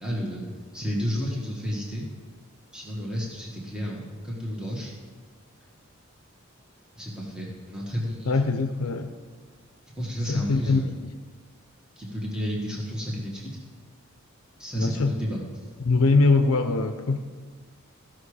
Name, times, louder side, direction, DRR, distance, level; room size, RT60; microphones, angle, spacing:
voice 1, 0.0-2.0 2.7-4.9 6.9-8.4 10.0-11.0 12.0-13.5 14.6-15.6, equal, 5° right, -4 dB, 1.3 m, -31 dB
voice 2, 8.3-9.1 10.3-10.8 14.7-15.1 15.8-17.2, left 3 dB, 75° left, 7 dB, 0.6 m, -22 dB
14.5 x 6.0 x 4.9 m, 1.5 s
head